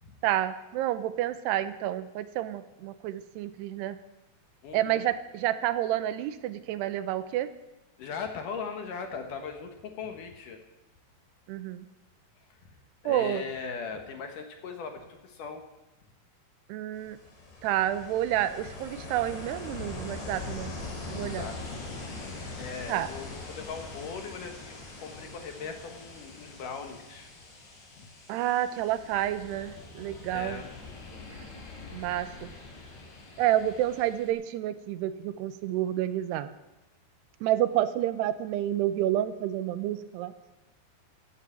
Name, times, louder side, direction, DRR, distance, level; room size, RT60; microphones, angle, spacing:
voice 1, 0.2-4.0 4.7-7.5 11.5-11.9 13.1-13.4 16.7-17.2 17.6-20.7 21.1-21.5 22.9-23.1 28.3-30.6 31.9-32.5 33.4-36.5 37.4-40.3, right 13 dB, 85° right, 12 dB, 2.9 m, -29 dB
voice 2, 4.6-5.0 8.0-10.6 12.4-12.7 13.0-15.6 21.1-21.8 22.2-27.3 28.0-28.1 30.3-30.7, left 5 dB, 65° left, 5 dB, 2.5 m, -39 dB
Ocean, 16.9-34.3, left 3 dB, 85° left, 6.2 m, -43 dB
14.5 x 9.6 x 8.6 m, 1.0 s
omnidirectional pair, 4.7 m